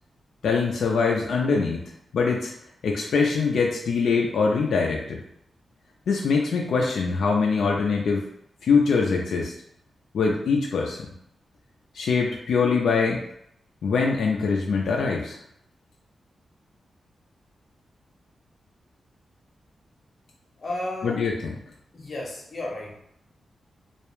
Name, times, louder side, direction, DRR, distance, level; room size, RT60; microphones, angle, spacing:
voice 1, 0.4-1.8 2.1-2.5 2.8-5.2 6.1-8.2 8.6-9.5 10.1-11.1 11.9-13.2 13.8-15.4 21.0-21.5, left 5 dB, 90° left, -1 dB, 0.3 m, -23 dB
voice 2, 20.6-21.2 21.9-23.0, left 1 dB, 45° left, -2 dB, 0.7 m, -33 dB
2.3 x 2.1 x 3.0 m, 0.74 s
wide cardioid pair, 120°, 0 cm